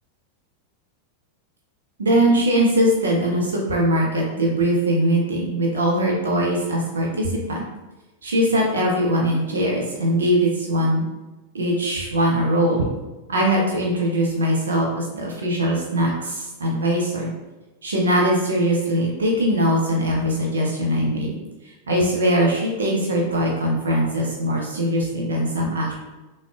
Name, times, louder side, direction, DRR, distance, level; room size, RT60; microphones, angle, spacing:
voice 1, 2.0-7.6 8.2-11.1 11.5-12.8 13.3-17.3 17.8-21.3 21.6-25.9, equal, 70° right, -1 dB, 0.5 m, -21 dB
3.5 x 2.1 x 2.3 m, 1.1 s
figure-of-eight pair, 90°, 0 cm